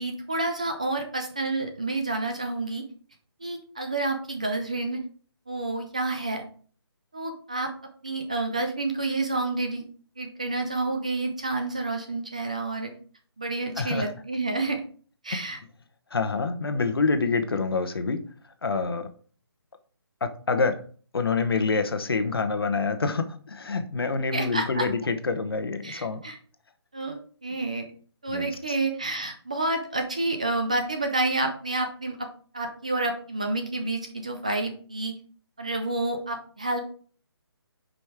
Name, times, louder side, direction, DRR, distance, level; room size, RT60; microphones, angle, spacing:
voice 1, 0.0-2.8 3.4-5.0 5.5-6.4 7.1-7.7 8.0-9.8 10.2-12.9 13.4-14.8 15.2-15.6 24.3-24.9 25.8-26.4 26.9-27.8 28.2-32.3 32.5-35.1 35.6-36.8, right 2 dB, 15° right, 4 dB, 0.4 m, -29 dB
voice 2, 13.8-14.1 15.3-15.4 16.1-18.2 18.6-19.1 20.2-20.8 21.1-26.2 28.3-28.8, left 4 dB, 60° left, 9 dB, 1.0 m, -27 dB
7.8 x 5.2 x 3.5 m, 0.43 s
hypercardioid pair, 175°, 14 cm